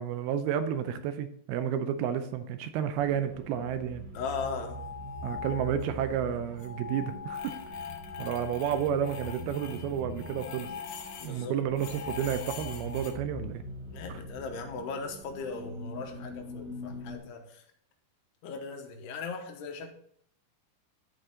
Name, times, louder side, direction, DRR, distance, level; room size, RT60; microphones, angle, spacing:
voice 1, 0.0-4.1 5.2-7.6 8.2-10.7 11.2-13.6, right 9 dB, 80° right, 10 dB, 2.5 m, -31 dB
sound 1, 2.9-17.2, equal, 55° right, 4.4 m, -44 dB
voice 2, 4.1-4.8 11.2-11.6 13.9-17.6 18.4-19.9, left 5 dB, 85° left, 3 dB, 3.2 m, -38 dB
sound 2, 4.5-6.1 6.3-11.4 11.8-13.1, left 7 dB, 70° left, 2.0 m, -42 dB
13.5 x 4.7 x 3.8 m, 0.65 s
omnidirectional pair, 4.6 m